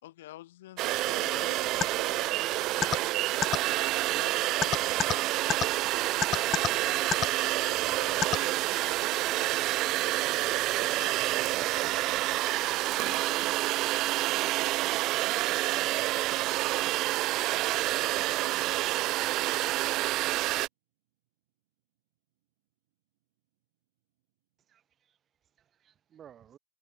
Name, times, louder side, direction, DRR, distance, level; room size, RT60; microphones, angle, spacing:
voice 1, 0.0-9.6 10.4-12.4 12.7-13.5 14.7-14.8, left 15 dB, 75° left, 6.1 m, -51 dB
sound 1, 0.8-20.7, right 18 dB, 50° right, 0.7 m, -28 dB
sound 2, 1.8-1.9 2.8-3.0 3.4-3.6 4.6-5.1 5.5-5.6 6.2-6.7 7.1-7.3 8.2-8.4, left 9 dB, 35° left, 0.5 m, -25 dB
voice 2, 14.4-15.9 16.3-18.7, right 21 dB, 70° right, 4.0 m, -53 dB
voice 3, 24.6-26.6, right 9 dB, 35° right, 4.4 m, -57 dB
hypercardioid pair, 95°, 0 cm